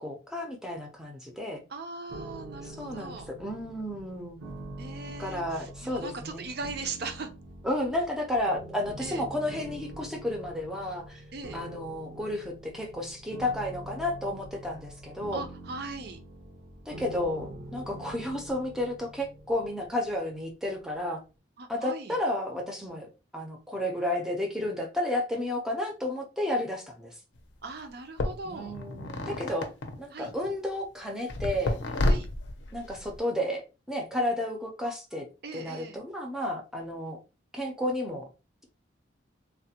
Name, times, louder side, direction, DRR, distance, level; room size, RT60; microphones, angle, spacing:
voice 1, 0.0-1.6 2.6-4.4 5.2-6.5 7.6-11.2 11.5-15.4 16.9-21.2 21.7-27.1 28.5-29.7 30.0-31.8 32.7-33.6 33.9-35.3 35.5-37.2 37.5-38.3, left 1 dB, 5° right, 1 dB, 0.5 m, -32 dB
voice 2, 1.7-3.3 4.8-7.3 9.0-9.2 11.3-11.6 15.3-16.2 21.6-22.2 27.6-28.7 29.2-29.4 30.1-30.3 32.0-32.3 35.4-36.0, right 3 dB, 50° right, 6 dB, 0.5 m, -39 dB
sound 1, 2.1-21.1, right 1 dB, 75° right, 0.9 m, -45 dB
sound 2, 27.4-27.5 28.2-30.5 31.3-33.2, left 1 dB, 65° left, 0.5 m, -30 dB
3.2 x 2.1 x 2.8 m, 0.31 s
head